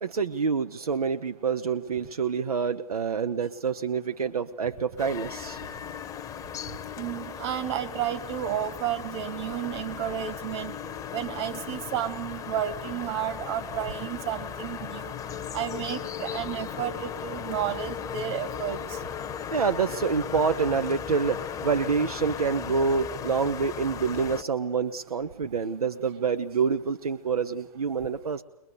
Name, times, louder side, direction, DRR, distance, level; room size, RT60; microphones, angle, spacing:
voice 1, 0.0-5.6 19.5-28.4, right 5 dB, 80° right, 10 dB, 0.9 m, -27 dB
sound 1, 5.0-24.4, left 8 dB, 15° left, 1.0 m, -37 dB
voice 2, 7.0-10.7 11.1-15.1 15.5-18.8, right 10 dB, 45° right, 9 dB, 2.2 m, -32 dB
23.0 x 21.0 x 6.8 m, 0.94 s
hypercardioid pair, 125°, 19 cm